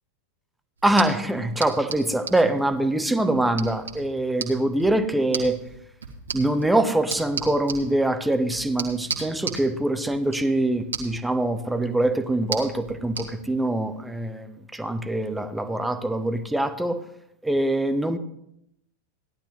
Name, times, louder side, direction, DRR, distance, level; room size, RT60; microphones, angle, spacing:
voice 1, 0.8-5.6 6.3-17.0 17.4-18.2, right 1 dB, 5° right, 9 dB, 0.9 m, -24 dB
sound 1, 0.8-13.3, right 5 dB, 75° right, 1.8 m, -37 dB
16.5 x 11.5 x 3.2 m, 0.78 s
figure-of-eight pair, 90°, 0 cm